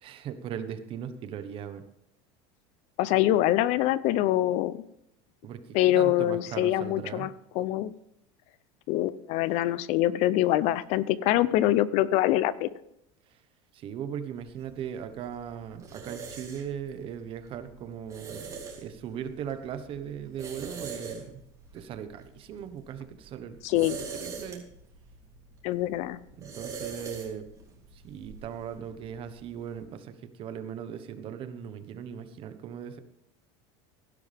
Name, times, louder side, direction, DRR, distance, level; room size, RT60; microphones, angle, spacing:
voice 1, 0.0-1.8 5.4-7.3 13.3-13.4 13.7-21.4 21.7-23.9 24.2-24.6 26.4-27.5 27.9-33.0, right 8 dB, 40° right, 10 dB, 1.2 m, -38 dB
voice 2, 3.0-4.8 5.7-7.3 7.6-7.9 8.9-12.7 23.6-24.0 25.6-26.2, left 14 dB, 50° left, 18 dB, 0.6 m, -24 dB
sound 1, 14.4-29.8, right 5 dB, 20° right, 3.1 m, -44 dB
16.5 x 11.5 x 3.5 m, 0.79 s
supercardioid pair, 150°, 14 cm